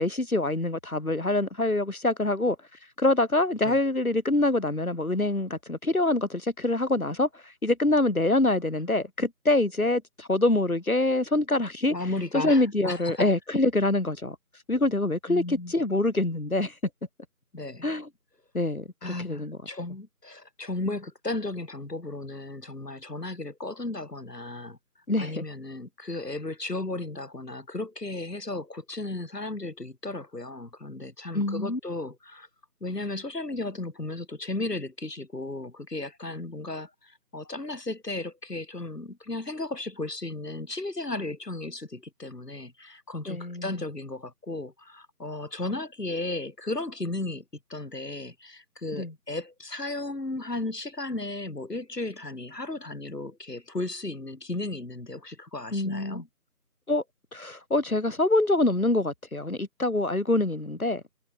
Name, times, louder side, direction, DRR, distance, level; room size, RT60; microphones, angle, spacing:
voice 1, 0.0-2.6 3.0-11.9 12.3-14.4 14.7-16.7 17.8-18.1 18.5-19.6 25.1-25.4 31.3-31.8 43.3-43.8 49.0-49.1 55.7-56.2 56.9-57.0 57.3-61.2, left 2 dB, 60° left, 4.6 m, -25 dB
voice 2, 11.9-13.3 15.3-15.7 17.5-17.9 19.0-24.8 25.2-32.5 32.8-47.4 47.7-56.3, left 2 dB, 90° left, 3.7 m, -35 dB
figure-of-eight pair, 180°, 47 cm